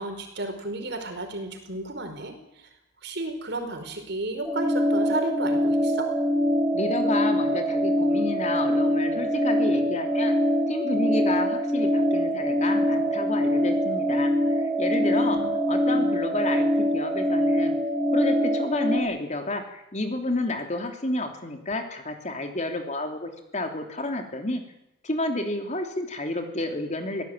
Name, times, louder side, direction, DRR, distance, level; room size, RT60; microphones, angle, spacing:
voice 1, 0.0-2.7 3.0-6.1 15.1-15.5 15.8-16.2, right 2 dB, 60° right, 5 dB, 4.9 m, -33 dB
sound 1, 4.4-19.0, equal, ahead, 5.0 m, -24 dB
voice 2, 6.7-10.3 10.7-15.4 15.7-17.7 18.1-24.6 25.0-27.2, left 2 dB, 35° left, 5 dB, 3.1 m, -30 dB
24.0 x 17.5 x 9.1 m, 0.82 s
head